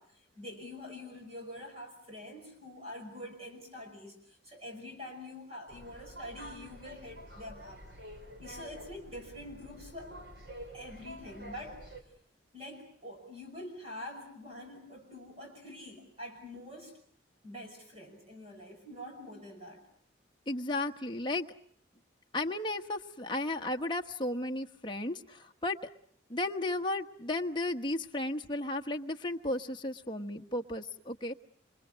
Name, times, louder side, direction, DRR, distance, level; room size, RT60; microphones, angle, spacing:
voice 1, 0.0-7.8 8.4-10.2 10.7-11.8 12.5-16.9 17.4-19.8, left 1 dB, 35° right, 3 dB, 5.7 m, -46 dB
sound 1, 5.7-12.0, equal, 60° right, 4.4 m, -48 dB
voice 2, 20.5-21.5 22.3-25.8 26.3-31.3, left 2 dB, 25° left, 3 dB, 1.2 m, -34 dB
27.5 x 26.5 x 6.4 m, 0.62 s
head